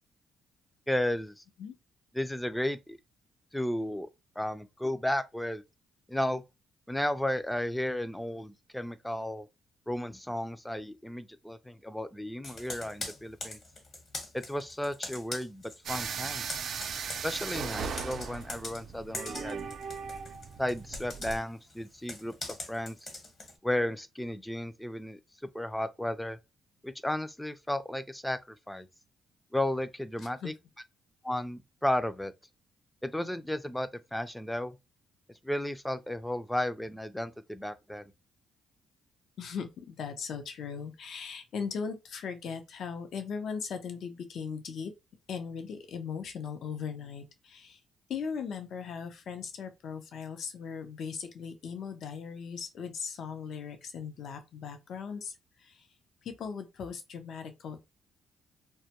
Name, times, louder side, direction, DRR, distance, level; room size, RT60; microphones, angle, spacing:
voice 1, 0.9-1.4 2.1-3.0 3.5-4.1 4.4-5.6 6.1-6.4 6.9-9.5 9.9-13.6 14.3-16.4 17.2-19.7 20.6-23.0 23.6-25.2 25.5-26.4 26.8-28.9 29.5-30.5 31.2-32.3 33.0-34.8 35.4-38.0, left 1 dB, 5° left, 0.4 m, -33 dB
Computer keyboard, 12.4-16.0 16.3-23.6, left 2 dB, 45° left, 1.0 m, -42 dB
sound 1, 15.9-21.4, right 6 dB, 65° right, 0.4 m, -38 dB
voice 2, 39.4-44.9 45.3-47.8 48.1-55.4 55.6-55.8 56.2-57.8, left 6 dB, 65° left, 0.6 m, -38 dB
2.1 x 2.1 x 2.8 m
cardioid pair, 90°, 0 cm